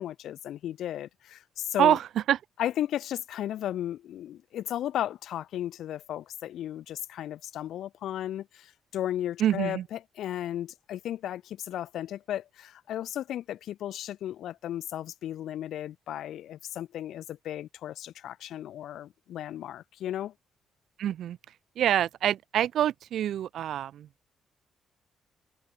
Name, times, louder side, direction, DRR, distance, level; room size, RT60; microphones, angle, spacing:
voice 1, 0.0-2.0 2.6-20.3, left 11 dB, 75° left, 6.1 m, -35 dB
voice 2, 1.8-2.4 9.4-9.9 21.0-21.4 21.8-24.1, right 11 dB, 70° right, 0.9 m, -26 dB
cardioid pair, 90°, 0 cm